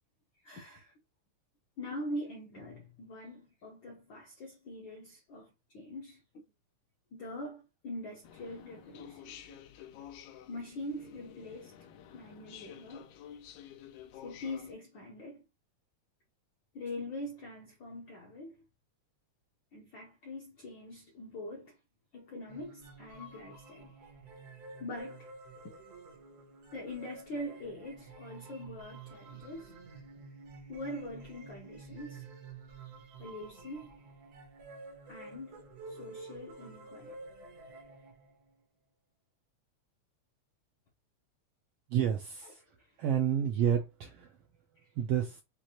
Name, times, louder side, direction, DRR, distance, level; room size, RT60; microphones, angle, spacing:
voice 1, 0.4-0.9 1.8-6.2 7.1-9.3 10.5-11.7 12.1-13.1 14.1-15.4 16.7-18.6 19.7-21.8 22.1-23.9 24.8-25.3 25.6-25.7 26.7-29.8 30.7-32.3 33.2-34.0 35.1-37.1 42.4-42.5 42.8-43.0 43.7-43.8, left 1 dB, 75° left, 1.1 m, -43 dB
sound 1, 8.2-14.7, left 9 dB, 90° left, 2.1 m, -51 dB
sound 2, 22.5-38.5, right 3 dB, 65° right, 0.9 m, -50 dB
voice 2, 41.9-42.6 43.0-44.3 45.0-45.4, right 9 dB, 80° right, 1.4 m, -29 dB
6.2 x 2.5 x 2.8 m
omnidirectional pair, 3.3 m